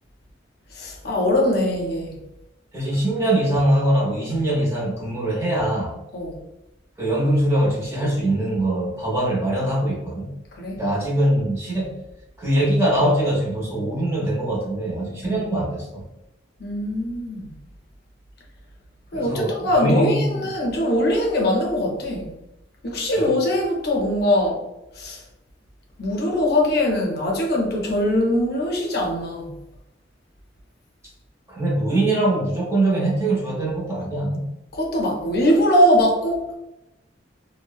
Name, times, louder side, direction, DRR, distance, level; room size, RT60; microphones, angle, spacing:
voice 1, 0.8-2.1 6.1-6.4 10.6-10.8 11.8-11.9 15.2-15.4 16.6-17.5 19.1-22.3 22.8-24.6 25.0-25.2 26.0-29.5 34.8-36.4, left 1 dB, 55° left, 0 dB, 0.5 m, -21 dB
voice 2, 2.7-5.9 7.0-10.3 10.8-11.9 12.4-16.0 19.1-20.5 23.2-23.3 31.5-34.5, right 1 dB, 15° right, -4 dB, 0.6 m, -22 dB
2.7 x 2.0 x 2.2 m, 0.90 s
head